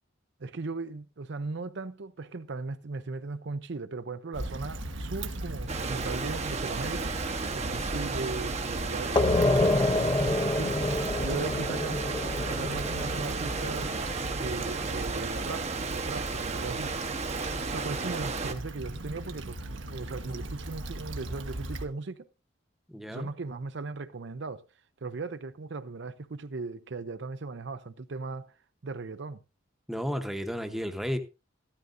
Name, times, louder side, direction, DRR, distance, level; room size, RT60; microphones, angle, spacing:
voice 1, 0.4-7.2 7.5-10.9 11.2-14.0 14.3-16.9 17.7-22.3 23.1-24.7 25.0-28.5 28.8-29.4, right 3 dB, 65° right, 0.6 m, -38 dB
Stream / Traffic noise roadway noise / Trickle dribble, 4.3-21.9, right 1 dB, 80° right, 1.4 m, -38 dB
sound 1, 5.7-18.5, right 4 dB, 35° right, 0.9 m, -34 dB
sound 2, 9.2-14.5, left 2 dB, 25° left, 0.6 m, -27 dB
voice 2, 22.9-23.3 29.9-31.2, equal, ahead, 0.9 m, -32 dB
14.0 x 13.0 x 2.6 m
head